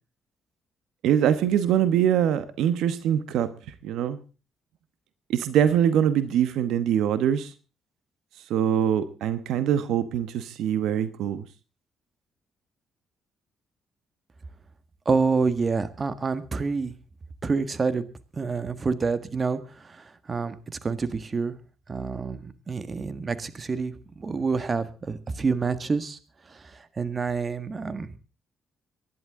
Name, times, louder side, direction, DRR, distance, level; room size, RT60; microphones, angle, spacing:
voice 1, 1.0-3.5 3.8-4.2 5.3-7.5 8.5-11.5, right 9 dB, 85° right, 13 dB, 1.1 m, -23 dB
voice 2, 15.0-16.9 17.4-18.1 18.3-21.6 21.9-26.2 26.5-26.6 27.0-28.1, right 4 dB, 35° right, 13 dB, 1.6 m, -27 dB
23.5 x 11.0 x 3.7 m, 0.33 s
cardioid pair, 90°, 0 cm